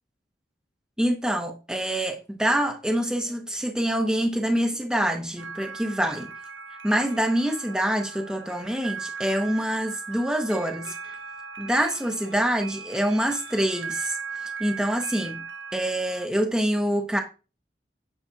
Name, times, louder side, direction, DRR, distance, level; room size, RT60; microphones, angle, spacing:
voice 1, 1.0-6.3 6.8-10.9 11.6-15.4 15.7-17.2, right 1 dB, 5° right, 0.6 m, -26 dB
sound 1, 5.4-16.3, right 5 dB, 90° right, 0.6 m, -38 dB
8.3 x 4.5 x 2.8 m
head